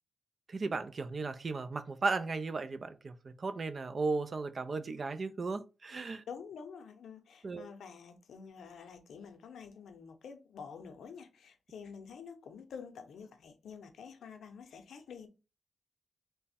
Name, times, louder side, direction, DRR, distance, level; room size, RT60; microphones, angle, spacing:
voice 1, 0.5-6.2 7.4-7.7, right 3 dB, 50° right, 0.4 m, -35 dB
voice 2, 6.3-15.3, left 6 dB, 85° left, 0.5 m, -48 dB
3.3 x 2.1 x 4.1 m
cardioid pair, 60°, 0 cm